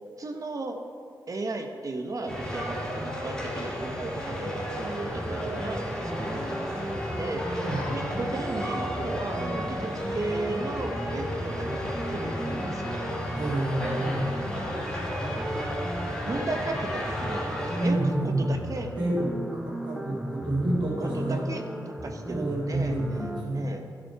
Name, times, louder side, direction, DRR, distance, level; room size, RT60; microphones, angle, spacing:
voice 1, 0.2-0.8 1.3-5.8 6.1-13.0 16.2-18.1 18.4-18.9 21.0-23.2 23.5-23.8, right 2 dB, 45° right, 3 dB, 0.9 m, -35 dB
sound 1, 2.3-17.9, equal, 10° left, 2.6 m, -33 dB
sound 2, 5.1-23.4, right 1 dB, 5° right, 0.7 m, -37 dB
voice 2, 13.4-14.3 17.8-18.5 18.9-19.4 19.6-21.4 22.3-23.7, right 1 dB, 70° right, -10 dB, 2.4 m, -28 dB
11.5 x 6.2 x 4.6 m, 2.2 s
cardioid pair, 60°, 8 cm